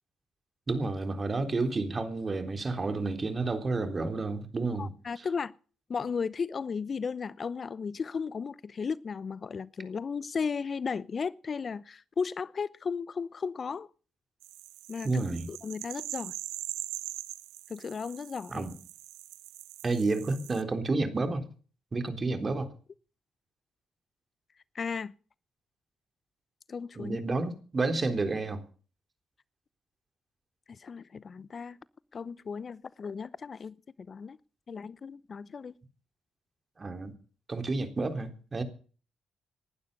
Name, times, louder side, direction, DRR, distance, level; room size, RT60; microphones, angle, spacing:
voice 1, 0.7-4.9 15.0-15.5 18.5-18.7 19.8-21.4 21.9-22.7 27.0-28.6 36.8-37.1 37.5-38.6, right 3 dB, 35° right, 3.7 m, -30 dB
voice 2, 4.8-5.5 5.9-13.9 14.9-16.3 17.7-18.7 24.7-25.1 26.7-27.2 30.7-31.8 32.1-33.8 34.1-34.4 34.7-35.7, left 5 dB, 45° left, 0.8 m, -35 dB
sound 1, 14.4-20.6, right 16 dB, 85° right, 1.0 m, -42 dB
19.5 x 12.0 x 5.5 m
supercardioid pair, 60°, 0 cm